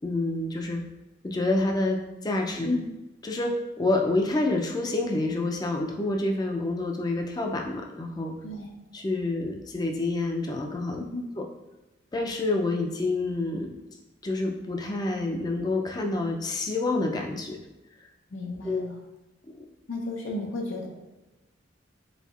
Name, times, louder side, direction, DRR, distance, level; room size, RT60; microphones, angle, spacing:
voice 1, 0.0-0.8 1.2-2.8 3.2-8.3 8.9-11.0 11.4-11.5 12.1-13.8 14.2-17.6 18.6-18.8 19.5-19.7, left 2 dB, 20° left, 2 dB, 0.4 m, -28 dB
voice 2, 11.0-11.3 18.3-19.0 19.9-20.9, left 2 dB, 90° left, 1 dB, 0.7 m, -33 dB
4.1 x 3.9 x 2.4 m, 1.0 s
head